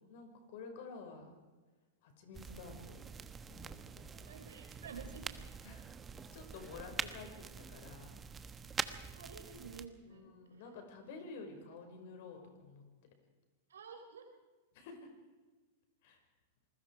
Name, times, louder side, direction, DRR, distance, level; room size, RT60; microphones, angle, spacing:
voice 1, 0.1-1.3 2.0-3.0 3.5-4.3 5.6-5.8 6.3-8.1 10.1-12.8 14.7-15.1 16.0-16.2, left 4 dB, 60° left, 4 dB, 5.7 m, -50 dB
sound 1, 2.3-9.9, right 6 dB, 20° right, 1.1 m, -45 dB
voice 2, 4.3-5.2 9.1-10.3 13.7-14.3, right 5 dB, 85° right, 4 dB, 4.1 m, -50 dB
27.5 x 20.0 x 4.9 m, 1.3 s
hypercardioid pair, 115°, 0 cm